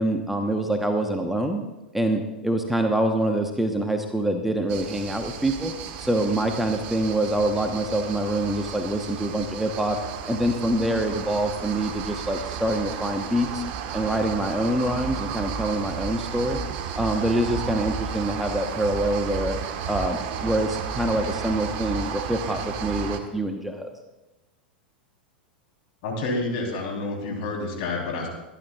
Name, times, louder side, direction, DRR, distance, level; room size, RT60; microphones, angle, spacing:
voice 1, 0.0-1.6 1.9-5.7 6.0-10.0 10.3-13.6 13.9-16.6 16.9-19.6 19.9-23.9, right 1 dB, 5° right, 4 dB, 1.1 m, -25 dB
sound 1, 4.7-23.2, right 7 dB, 50° right, 1.4 m, -33 dB
voice 2, 26.0-28.3, left 2 dB, 55° left, 0 dB, 3.8 m, -29 dB
24.0 x 12.0 x 2.5 m, 1.0 s
figure-of-eight pair, 90°, 5 cm